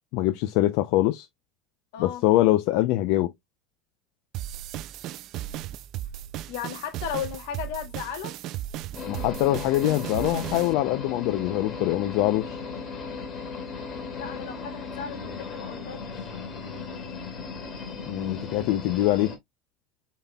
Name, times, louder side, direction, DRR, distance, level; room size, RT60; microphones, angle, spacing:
voice 1, 0.1-1.3 2.0-3.3 9.1-12.6 18.1-19.3, left 15 dB, 55° left, 0.5 m, -23 dB
voice 2, 1.9-2.2 6.5-8.4 14.2-16.2, left 9 dB, 75° left, 1.8 m, -35 dB
sound 1, 4.3-10.7, right 13 dB, 40° right, 0.3 m, -36 dB
sound 2, 8.9-19.4, left 4 dB, 25° left, 1.8 m, -36 dB
5.4 x 4.1 x 2.2 m
cardioid pair, 175°, 0 cm